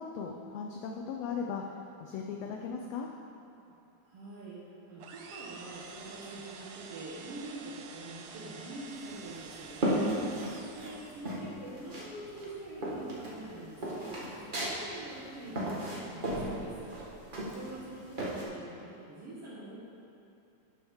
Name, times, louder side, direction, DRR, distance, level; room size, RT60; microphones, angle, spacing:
voice 1, 0.0-1.6 2.0-3.1, left 6 dB, 75° left, 1 dB, 1.7 m, -37 dB
voice 2, 4.0-4.6 4.9-10.3 10.8-16.9 17.5-19.8, right 2 dB, 55° right, -8 dB, 2.2 m, -45 dB
sound 1, 5.0-11.5, right 5 dB, 85° right, 2.1 m, -48 dB
sound 2, 9.1-10.9 11.2-12.1 12.4-18.4, right 1 dB, 35° right, 0.8 m, -34 dB
11.5 x 9.1 x 3.6 m, 2.7 s
omnidirectional pair, 3.4 m